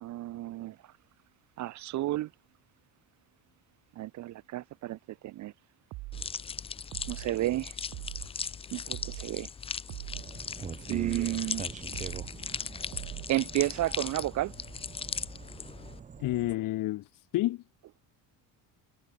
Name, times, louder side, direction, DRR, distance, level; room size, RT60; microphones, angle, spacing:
voice 1, 0.0-0.9 1.6-2.3 4.0-5.5 7.1-7.8 8.7-9.5 10.9-11.6 13.3-14.5, right 15 dB, 45° right, 0.8 m, -32 dB
sound 1, 5.9-6.3 6.9-7.3 7.9-8.3 8.9-9.3 9.9-10.3 10.9-11.3 11.9-12.3 12.9-13.3, right 21 dB, 80° right, 2.7 m, -41 dB
sound 2, 6.1-16.0, left 6 dB, 15° left, 0.4 m, -39 dB
sound 3, 10.1-16.6, right 6 dB, 20° right, 1.2 m, -43 dB
voice 2, 16.2-17.6, left 16 dB, 55° left, 1.8 m, -30 dB
cardioid pair, 180°, 39 cm